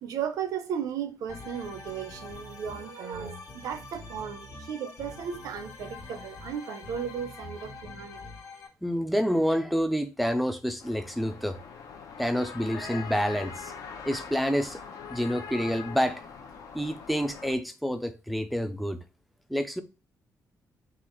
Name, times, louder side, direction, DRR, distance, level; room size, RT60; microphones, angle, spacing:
voice 1, 0.0-8.2, right 8 dB, 70° right, 0.6 m, -35 dB
sound 1, 1.3-8.7, left 2 dB, 60° left, 1.2 m, -44 dB
voice 2, 8.8-11.6 12.2-13.7 14.1-14.8 15.1-16.2 16.7-19.0 19.5-19.8, equal, ahead, 0.3 m, -28 dB
sound 2, 10.8-17.5, left 6 dB, 75° left, 0.7 m, -42 dB
3.8 x 2.4 x 4.3 m
cardioid pair, 180°, 6 cm